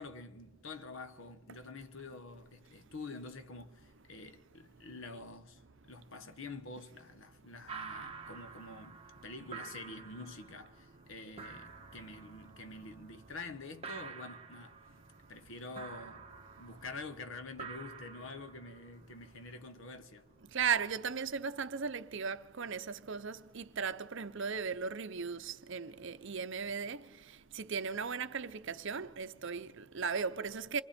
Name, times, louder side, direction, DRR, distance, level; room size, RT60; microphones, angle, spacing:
voice 1, 0.0-5.6 5.9-14.8 15.3-16.3 16.6-20.3, left 3 dB, 65° left, 1.4 m, -47 dB
sound 1, 7.7-22.2, right 5 dB, 25° right, 1.3 m, -50 dB
voice 2, 20.5-27.0 27.5-30.8, right 6 dB, 60° right, 0.7 m, -36 dB
27.5 x 24.0 x 4.4 m
head